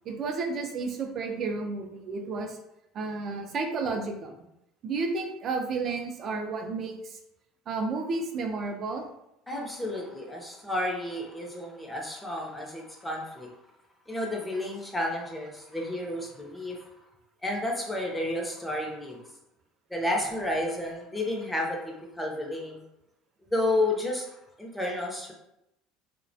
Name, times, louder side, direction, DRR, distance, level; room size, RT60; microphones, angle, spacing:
voice 1, 0.1-2.6 2.9-4.4 4.8-7.2 7.7-9.0, right 4 dB, 45° right, 4 dB, 0.4 m, -32 dB
voice 2, 9.5-13.5 14.1-16.8 17.4-19.2 19.9-22.8 23.5-24.3 24.6-25.3, left 1 dB, 10° left, -1 dB, 0.6 m, -31 dB
2.2 x 2.1 x 2.6 m, 0.84 s
supercardioid pair, 105°, 0 cm